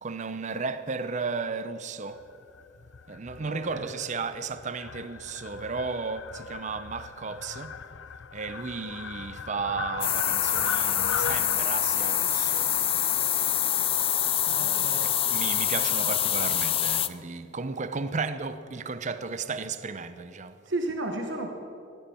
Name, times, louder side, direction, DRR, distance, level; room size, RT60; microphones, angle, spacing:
voice 1, 0.0-2.2 3.1-7.7 8.3-12.7 14.6-20.6, right 4 dB, 40° right, 0.6 m, -34 dB
Fowl, 2.1-11.6, left 6 dB, 85° left, 0.6 m, -39 dB
voice 2, 3.4-3.9 14.5-15.1 20.7-21.5, right 2 dB, 70° right, 1.2 m, -33 dB
sound 1, 10.0-17.1, left 11 dB, 30° left, 0.5 m, -25 dB
18.5 x 16.0 x 4.4 m
head